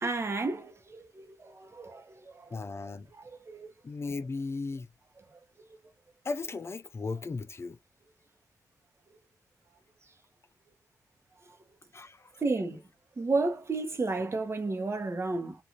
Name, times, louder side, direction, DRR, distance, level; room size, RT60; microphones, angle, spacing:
voice 1, 0.0-2.0 2.3-2.4 3.5-3.7 12.4-12.8 13.2-15.6, right 3 dB, 40° right, 0.9 m, -32 dB
voice 2, 2.5-3.1 3.8-4.9 6.2-7.8 11.9-12.3, left 3 dB, 40° left, 0.4 m, -36 dB
2.5 x 2.5 x 2.9 m
cardioid pair, 55°, 7 cm